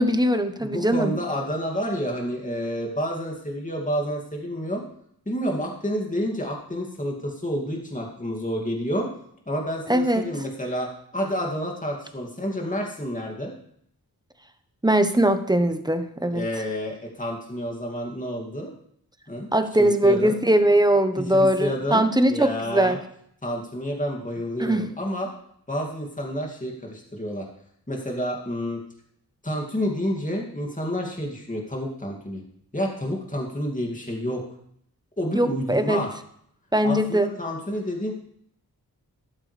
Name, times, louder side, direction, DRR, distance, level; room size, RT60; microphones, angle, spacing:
voice 1, 0.0-1.1 9.9-10.3 14.8-16.4 19.5-23.0 24.6-24.9 35.3-36.0 36.7-37.3, right 1 dB, 10° right, 9 dB, 1.1 m, -21 dB
voice 2, 0.6-4.8 5.3-9.1 9.5-13.5 16.3-18.7 19.3-19.5 19.8-20.4 21.2-23.0 23.4-25.3 25.7-27.5 27.9-28.8 29.4-32.4 32.7-34.4 35.2-36.1 36.8-38.1, equal, 20° left, 0 dB, 2.5 m, -29 dB
13.0 x 12.0 x 3.4 m, 0.68 s
cardioid pair, 50°, 38 cm